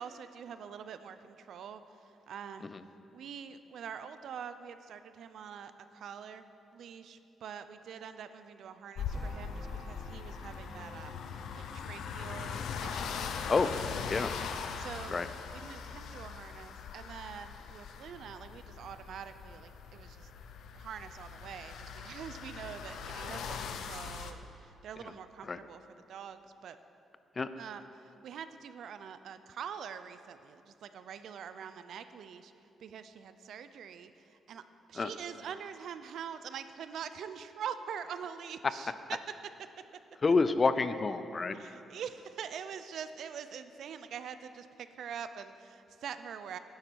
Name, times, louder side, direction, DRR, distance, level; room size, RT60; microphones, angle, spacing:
voice 1, 0.0-2.7 3.1-6.5 6.7-13.7 14.1-14.3 14.8-15.2 15.5-20.3 20.7-25.8 26.1-26.8 27.6-32.5 32.8-34.6 34.9-39.2 39.6-39.7 41.5-46.6, right 7 dB, 70° right, 11 dB, 0.6 m, -45 dB
sound 1, 9.0-24.3, left 6 dB, 80° left, 0.7 m, -41 dB
sound 2, 9.1-14.3, right 1 dB, 10° right, 0.8 m, -53 dB
voice 2, 40.2-41.8, left 4 dB, 35° left, 12 dB, 0.5 m, -28 dB
13.0 x 10.5 x 4.7 m, 2.7 s
cardioid pair, 105°, 0 cm